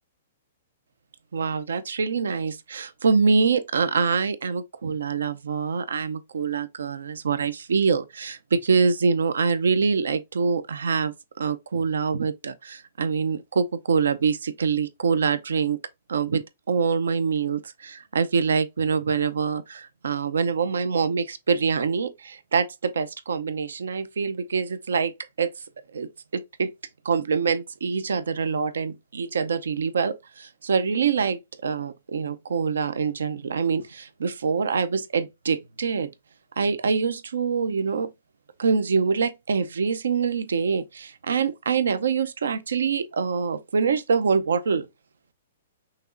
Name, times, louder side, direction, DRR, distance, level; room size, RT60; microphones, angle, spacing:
voice 1, 1.3-15.8 16.1-25.5 25.9-26.7 27.0-36.1 36.6-38.1 38.6-44.9, right 5 dB, 85° right, 0.5 m, -25 dB
5.8 x 3.0 x 2.5 m
hypercardioid pair, 140°, 0 cm